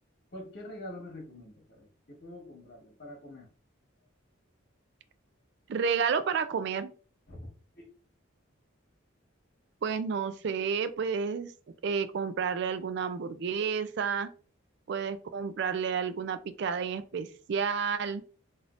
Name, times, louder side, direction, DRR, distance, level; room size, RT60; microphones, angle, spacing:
voice 1, 0.3-3.5 7.3-7.5 7.7-7.9, left 1 dB, 50° left, -1 dB, 1.3 m, -45 dB
voice 2, 5.7-6.9 9.8-11.5 11.8-14.3 14.9-18.2, right 6 dB, 55° right, 11 dB, 0.3 m, -30 dB
3.3 x 2.6 x 2.5 m, 0.39 s
head